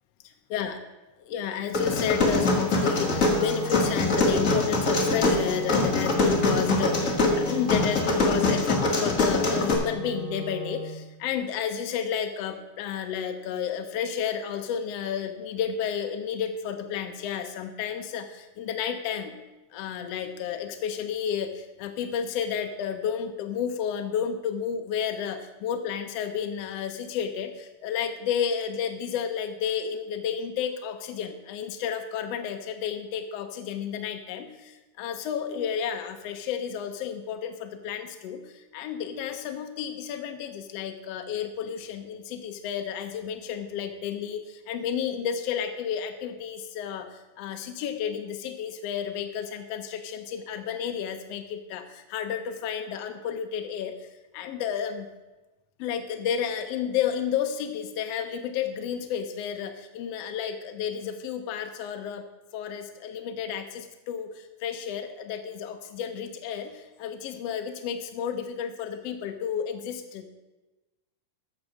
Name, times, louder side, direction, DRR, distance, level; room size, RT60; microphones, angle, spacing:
voice 1, 0.2-0.8 1.3-19.4 19.7-54.1 54.3-55.1 55.8-62.2 62.5-70.3, left 8 dB, 75° left, 6 dB, 1.4 m, -31 dB
sound 1, 1.7-9.7, left 2 dB, 30° left, 1.6 m, -23 dB
Wind instrument woodwind instrument, 2.9-11.1, equal, 55° left, 2.9 m, -37 dB
14.0 x 6.5 x 6.2 m, 1.1 s
omnidirectional pair, 3.7 m